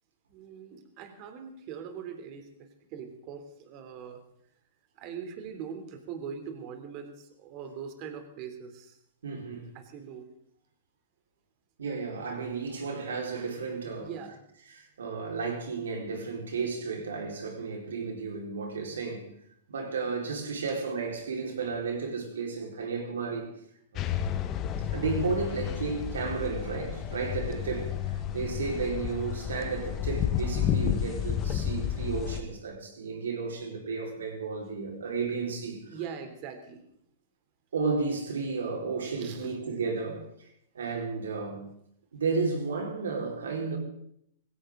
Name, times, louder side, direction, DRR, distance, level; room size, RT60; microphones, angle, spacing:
voice 1, 0.3-4.2 4.9-9.0 9.7-10.3 13.9-14.4 35.9-36.9 39.2-39.5, right 7 dB, 45° right, 3.2 m, -42 dB
voice 2, 9.2-9.7 11.8-14.1 14.7-19.3 19.7-23.5 23.9-24.1 24.9-35.8 37.7-40.2 40.7-41.6 42.1-43.8, right 4 dB, 85° right, 4.7 m, -33 dB
sound 1, 24.0-32.4, left 10 dB, 35° left, 1.5 m, -31 dB
20.0 x 16.5 x 3.9 m
hypercardioid pair, 125°, 0 cm